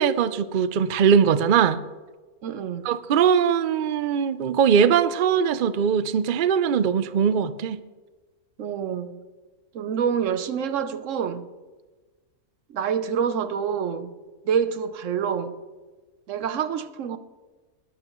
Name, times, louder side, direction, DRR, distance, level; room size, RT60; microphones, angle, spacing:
voice 1, 0.0-1.8 2.8-7.8, right 7 dB, 90° right, 0.4 m, -21 dB
voice 2, 2.4-2.9 8.6-9.2 9.7-11.5 12.7-14.1 14.4-15.6 16.3-17.2, right 7 dB, 60° right, 1.0 m, -27 dB
21.0 x 12.0 x 3.0 m
omnidirectional pair, 1.6 m